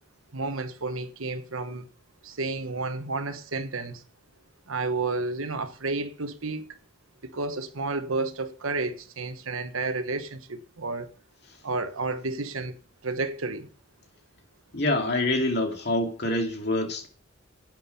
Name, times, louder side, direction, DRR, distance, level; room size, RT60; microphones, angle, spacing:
voice 1, 0.3-1.9 2.2-4.0 4.7-6.8 7.2-11.1 11.6-12.7 13.0-13.7, right 3 dB, 90° right, 1.3 m, -31 dB
voice 2, 14.7-17.1, left 1 dB, 50° left, 2.4 m, -26 dB
11.0 x 9.0 x 5.6 m
head